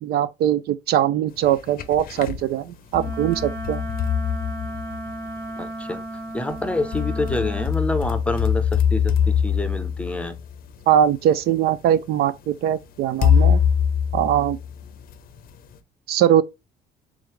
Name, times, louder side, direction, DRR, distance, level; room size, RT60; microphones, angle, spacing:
voice 1, 0.0-3.8 10.9-13.6 14.1-14.6 16.1-16.4, right 10 dB, 65° right, 0.4 m, -21 dB
sound 1, 1.4-2.4 2.9-5.3 6.5-10.9 11.7-11.8 13.2-15.1, left 8 dB, 60° left, 0.6 m, -23 dB
Wind instrument woodwind instrument, 2.9-7.8, right 1 dB, 90° right, 1.6 m, -34 dB
voice 2, 5.6-6.0 6.3-10.3, left 2 dB, 5° left, 0.7 m, -27 dB
3.7 x 3.2 x 3.0 m
cardioid pair, 110°, 17 cm